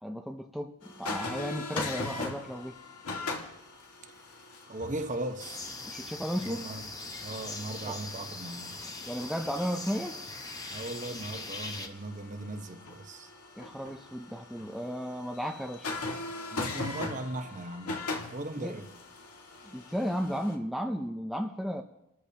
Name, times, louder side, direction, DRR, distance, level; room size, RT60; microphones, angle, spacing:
voice 1, 0.0-2.8 5.9-6.6 7.9-8.0 9.1-10.2 13.6-15.9 18.6-18.8 19.6-21.8, equal, ahead, 0.5 m, -34 dB
sound 1, 0.8-20.6, left 3 dB, 85° left, 1.9 m, -41 dB
voice 2, 4.7-5.7 6.5-6.9 7.2-8.8 10.7-13.3 16.5-18.0 18.3-18.9, right 2 dB, 35° right, 1.0 m, -38 dB
sound 2, 5.4-11.9, left 3 dB, 15° left, 1.0 m, -41 dB
29.5 x 13.5 x 2.9 m
head